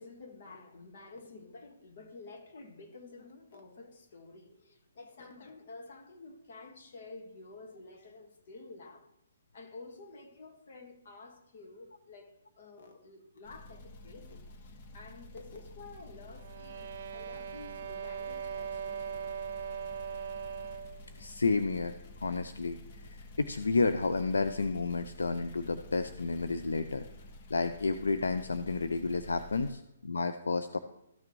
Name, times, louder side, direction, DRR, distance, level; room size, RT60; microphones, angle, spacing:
voice 1, 0.0-9.1 9.5-19.3 29.5-29.8, left 3 dB, 60° left, 1.6 m, -51 dB
sound 1, 13.4-29.7, left 1 dB, 40° left, 0.9 m, -50 dB
sound 2, 16.3-21.1, right 7 dB, 50° right, 0.4 m, -40 dB
voice 2, 21.2-21.9 22.2-22.8 23.1-27.1 27.5-30.8, left 3 dB, 90° left, 0.4 m, -31 dB
13.5 x 6.1 x 3.1 m
hypercardioid pair, 145°, 0 cm